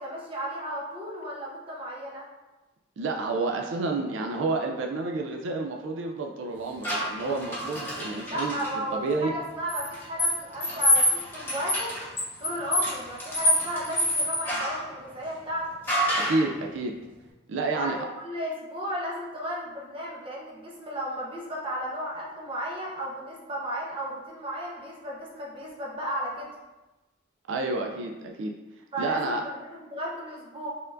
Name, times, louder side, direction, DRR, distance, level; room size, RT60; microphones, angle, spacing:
voice 1, 0.0-2.3 8.2-11.9 12.4-15.7 17.7-26.5 28.9-30.7, equal, 25° right, -4 dB, 0.8 m, -34 dB
voice 2, 3.0-8.5 8.9-9.3 16.1-16.9 17.5-18.1 27.5-28.5 29.0-29.4, right 3 dB, 75° right, 2 dB, 0.4 m, -29 dB
sound 1, 6.8-8.7 9.7-14.8 15.9-16.5, equal, 10° left, 1.0 m, -27 dB
4.4 x 3.6 x 2.5 m, 1.1 s
head